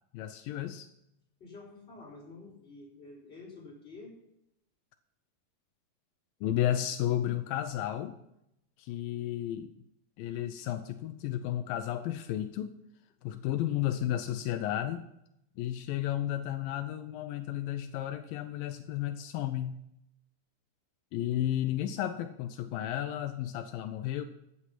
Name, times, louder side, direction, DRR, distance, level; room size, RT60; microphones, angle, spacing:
voice 1, 0.1-0.9 6.4-8.2 8.8-9.7 10.2-12.7 13.2-15.0 15.6-19.8 21.1-24.2, left 12 dB, 85° left, 8 dB, 2.4 m, -33 dB
voice 2, 1.4-4.1 13.2-13.7, left 3 dB, 15° left, -4 dB, 4.5 m, -49 dB
14.5 x 8.5 x 5.9 m, 0.82 s
omnidirectional pair, 4.0 m